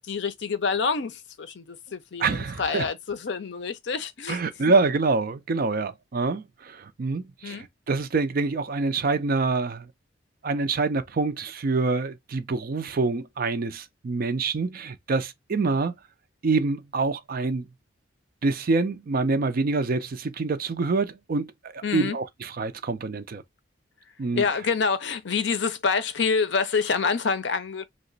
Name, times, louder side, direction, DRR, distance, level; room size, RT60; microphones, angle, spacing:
voice 1, 0.0-4.4 4.7-4.8 7.4-7.7 21.8-22.2 24.3-27.9, left 5 dB, 60° left, 0.6 m, -27 dB
voice 2, 2.2-2.8 4.3-9.9 10.4-15.9 16.4-17.7 18.4-23.4 24.2-24.4, right 3 dB, 50° right, 0.4 m, -26 dB
2.9 x 2.1 x 3.8 m
head